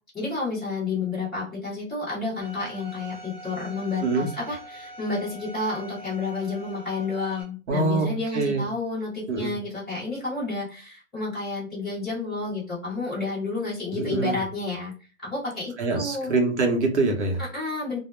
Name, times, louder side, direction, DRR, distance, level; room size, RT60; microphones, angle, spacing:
voice 1, 0.1-14.9 15.2-16.4 17.5-18.0, left 3 dB, ahead, -19 dB, 0.4 m, -30 dB
Bowed string instrument, 2.4-7.4, right 1 dB, 25° left, 0.8 m, -43 dB
voice 2, 4.0-4.3 7.7-8.7 9.3-9.6 13.9-14.4 15.8-17.4, right 3 dB, 55° right, 3 dB, 0.7 m, -24 dB
2.0 x 2.0 x 3.0 m, 0.36 s
hypercardioid pair, 175°, 41 cm